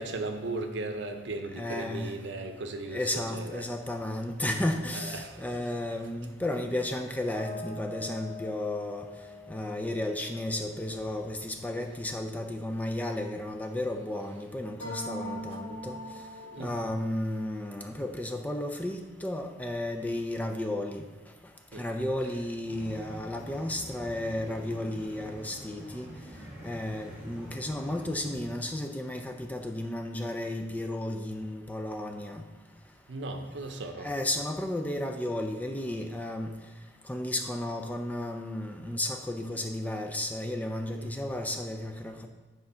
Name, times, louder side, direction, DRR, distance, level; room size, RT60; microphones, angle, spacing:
voice 1, 0.0-3.7 4.9-6.3 16.5-16.9 21.7-22.0 33.1-34.1 40.9-41.1, right 2 dB, 60° right, 6 dB, 0.7 m, -37 dB
voice 2, 1.6-2.2 2.9-9.1 9.5-16.0 16.6-21.0 21.7-26.1 26.6-32.4 34.0-36.5 37.1-42.3, left 1 dB, 10° left, 4 dB, 0.4 m, -33 dB
sound 1, 7.3-12.8 14.8-16.7, left 1 dB, 65° left, 2.5 m, -42 dB
sound 2, 22.6-28.5, equal, 10° right, 1.4 m, -46 dB
8.2 x 3.8 x 5.5 m, 1.2 s
head